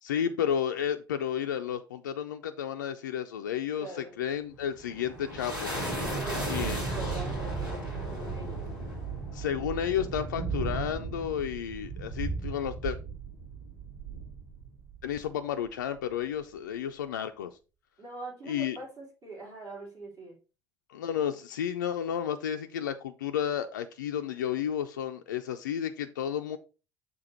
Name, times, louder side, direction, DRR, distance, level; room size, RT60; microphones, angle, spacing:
voice 1, 0.0-3.9 4.2-5.7 6.5-6.8 9.3-13.0 15.0-17.6 18.5-18.8 20.9-26.6, left 9 dB, 75° left, 0.4 m, -32 dB
voice 2, 3.7-4.1 6.1-8.7 18.0-20.4, right 2 dB, 45° right, 3.8 m, -43 dB
sound 1, 4.5-15.3, right 3 dB, 85° right, 2.1 m, -35 dB
6.7 x 3.4 x 4.4 m
figure-of-eight pair, 55°, 10 cm